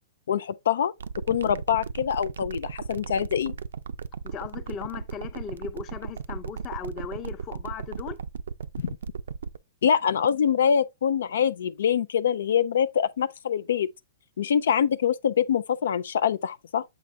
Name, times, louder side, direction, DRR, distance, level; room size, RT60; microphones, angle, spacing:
voice 1, 0.3-0.9 1.3-3.6 8.8-9.0 9.8-13.9 14.4-16.8, left 8 dB, 80° left, 0.4 m, -24 dB
sound 1, 1.0-9.6, right 6 dB, 90° right, 0.4 m, -35 dB
voice 2, 4.2-8.2, left 7 dB, 25° left, 0.7 m, -37 dB
7.5 x 4.0 x 3.3 m
hypercardioid pair, 155°, 0 cm